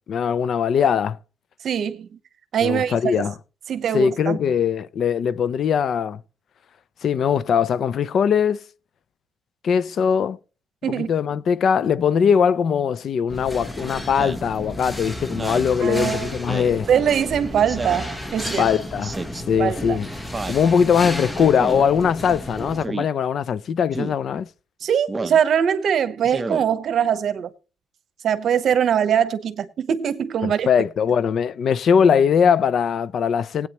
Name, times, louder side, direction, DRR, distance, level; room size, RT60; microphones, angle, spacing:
voice 1, 0.1-1.2 2.6-3.3 3.9-6.2 7.0-8.6 9.6-10.4 10.9-16.9 18.6-19.2 19.5-20.1 20.5-24.5 30.4-33.7, left 7 dB, 60° left, 0.5 m, -21 dB
voice 2, 1.6-2.1 2.5-3.1 3.7-4.4 10.8-11.1 15.8-16.3 16.9-18.7 19.6-20.0 24.8-27.5 28.2-30.7, right 8 dB, 60° right, 0.9 m, -22 dB
sound 1, 13.3-22.9, left 1 dB, 10° left, 1.1 m, -33 dB
Speech synthesizer, 14.1-14.5 15.3-15.7 16.5-16.8 17.7-18.1 19.0-19.4 20.3-20.6 21.6-21.9 22.8-23.1 23.9-24.2 25.1-25.4 26.2-26.6, right 3 dB, 20° right, 0.7 m, -30 dB
19.0 x 8.8 x 3.0 m
cardioid pair, 120°, 0 cm